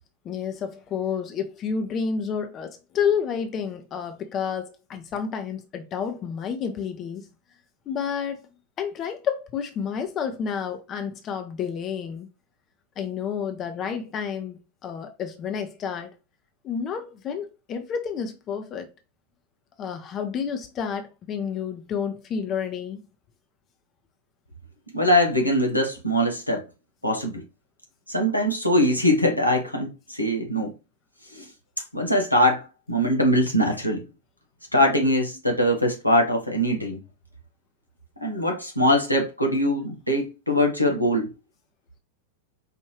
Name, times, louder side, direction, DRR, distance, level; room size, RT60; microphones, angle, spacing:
voice 1, 0.2-7.3 7.9-8.4 8.8-12.3 13.0-16.1 16.6-18.9 19.8-23.0, left 7 dB, 30° left, 0.7 m, -30 dB
voice 2, 24.9-26.6 27.0-27.4 28.1-30.7 31.3-31.4 31.9-34.0 34.7-37.0 38.2-41.3, equal, 90° left, 1.0 m, -22 dB
4.9 x 2.6 x 3.1 m
figure-of-eight pair, 90°, 0 cm